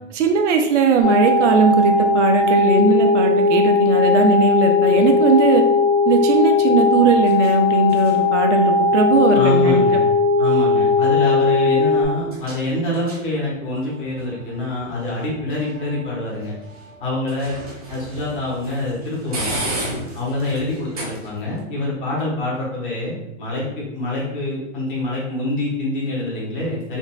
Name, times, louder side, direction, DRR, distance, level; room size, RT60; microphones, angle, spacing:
voice 1, 0.1-5.6 6.1-9.8, right 5 dB, 80° right, 4 dB, 0.6 m, -18 dB
sound 1, 1.0-12.1, left 4 dB, 25° left, 0.5 m, -17 dB
sound 2, 4.2-21.6, right 1 dB, 35° right, 0.4 m, -37 dB
voice 2, 9.3-10.0 10.4-16.5 17.0-17.5 17.9-19.6 20.1-27.0, left 1 dB, 45° left, -6 dB, 1.1 m, -25 dB
3.8 x 2.2 x 2.2 m, 0.88 s
hypercardioid pair, 180°, 36 cm